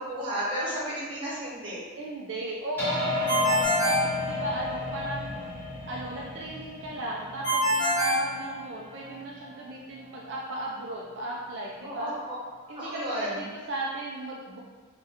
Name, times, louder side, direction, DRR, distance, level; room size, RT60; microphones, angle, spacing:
voice 1, 0.0-1.8 11.8-12.4 12.8-13.5, equal, 25° right, -8 dB, 0.9 m, -33 dB
voice 2, 2.0-5.3 5.9-12.1 12.7-14.6, right 1 dB, 60° right, -3 dB, 0.3 m, -36 dB
sound 1, 2.8-11.7, right 1 dB, 40° left, 1.0 m, -41 dB
sound 2, 2.8-7.4, left 3 dB, 10° left, 0.9 m, -32 dB
Ringtone, 3.3-4.9 7.4-9.1, equal, 80° left, 0.8 m, -26 dB
2.7 x 2.2 x 3.4 m, 1.4 s
head